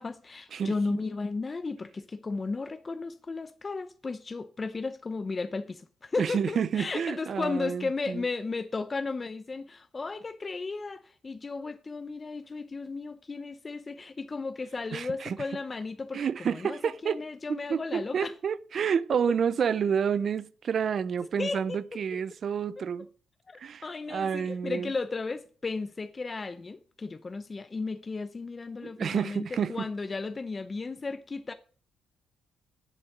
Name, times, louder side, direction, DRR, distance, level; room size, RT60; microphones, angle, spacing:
voice 1, 0.0-16.2 16.5-18.3 21.4-21.8 22.1-22.2 23.5-31.5, left 3 dB, 30° left, 0.6 m, -34 dB
voice 2, 0.5-1.0 6.2-8.2 14.9-15.4 16.1-17.2 17.5-23.1 23.6-24.9 28.8-29.9, right 7 dB, 55° right, 0.5 m, -29 dB
7.9 x 7.2 x 6.0 m
cardioid pair, 90°, 0 cm